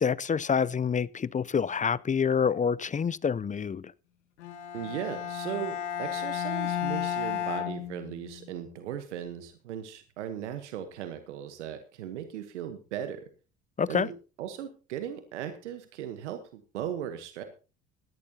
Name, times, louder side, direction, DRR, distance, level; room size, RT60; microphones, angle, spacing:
voice 1, 0.0-3.8 13.8-14.1, left 6 dB, 20° left, 0.5 m, -27 dB
Bowed string instrument, 4.4-8.5, left 10 dB, 85° left, 1.5 m, -33 dB
voice 2, 4.7-13.2 13.9-14.1 14.4-17.4, right 10 dB, 85° right, 1.2 m, -37 dB
17.5 x 13.0 x 2.8 m
hypercardioid pair, 60°, 35 cm